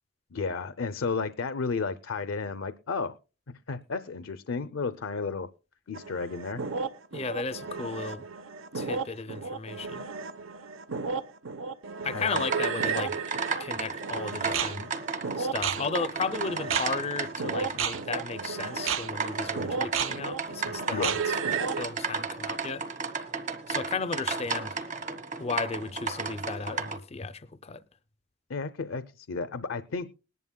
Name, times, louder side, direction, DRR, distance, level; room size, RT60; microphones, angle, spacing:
voice 1, 0.3-3.1 3.7-5.5 5.9-6.6 12.1-12.5 20.9-21.2 28.5-30.1, left 4 dB, 75° left, 0.6 m, -32 dB
sound 1, 5.9-21.8, right 6 dB, 80° right, 0.9 m, -33 dB
voice 2, 7.1-8.3 8.7-10.1 12.0-13.1 13.6-14.9 15.4-21.4 21.8-22.8 23.7-24.8 25.4-27.8, left 4 dB, 30° left, 0.5 m, -34 dB
sound 2, 12.3-27.0, right 4 dB, 40° right, 1.2 m, -34 dB
20.5 x 11.0 x 2.2 m
head